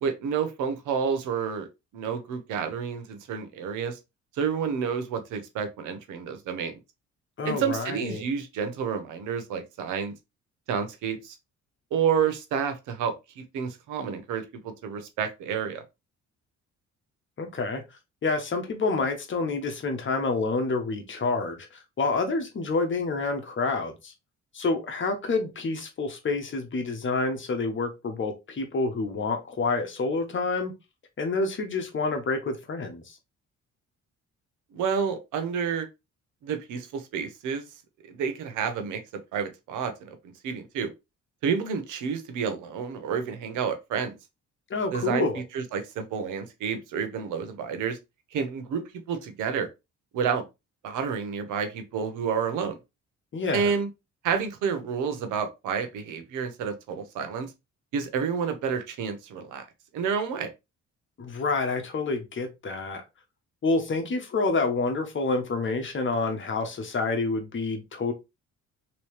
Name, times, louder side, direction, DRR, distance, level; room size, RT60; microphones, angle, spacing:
voice 1, 0.0-1.7 1.9-4.0 4.3-6.8 7.4-10.1 10.7-11.4 11.9-15.8 34.7-35.9 36.4-37.6 38.1-39.0 39.3-40.2 40.4-40.9 41.4-44.2 44.9-45.2 45.5-48.0 48.3-49.7 50.1-50.4 50.8-52.8 53.5-53.9 54.2-57.5 57.9-59.7 59.9-60.5, right 6 dB, 90° right, 0.8 m, -29 dB
voice 2, 7.4-8.2 17.4-17.8 18.2-24.1 24.5-30.7 31.2-33.2 44.7-45.4 53.3-53.7 61.2-63.0 63.6-68.1, left 3 dB, 40° left, 1.1 m, -28 dB
3.1 x 3.0 x 3.1 m
cardioid pair, 90°, 30 cm